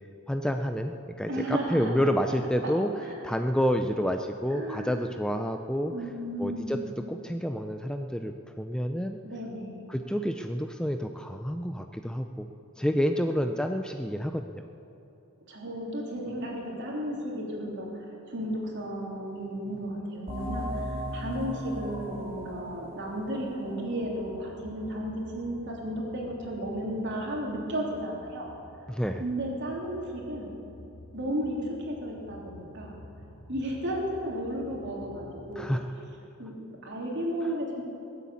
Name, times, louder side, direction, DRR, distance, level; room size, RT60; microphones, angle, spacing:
voice 1, 0.3-2.9 3.2-5.9 6.4-6.8 7.1-9.2 9.9-12.5 12.8-14.7 28.9-29.2 35.6-35.9, equal, 5° left, 6 dB, 0.5 m, -29 dB
voice 2, 1.2-1.9 2.3-2.4 3.0-3.2 4.5-5.0 5.9-6.8 9.2-9.9 15.5-28.5 29.2-30.5 31.1-33.0 33.5-35.7 36.4-37.8, equal, 55° right, -2 dB, 3.4 m, -34 dB
sound 1, 20.3-25.5, equal, 25° right, 2.9 m, -38 dB
sound 2, 24.0-35.5, left 1 dB, 80° left, 2.1 m, -51 dB
20.5 x 8.4 x 8.4 m, 2.9 s
head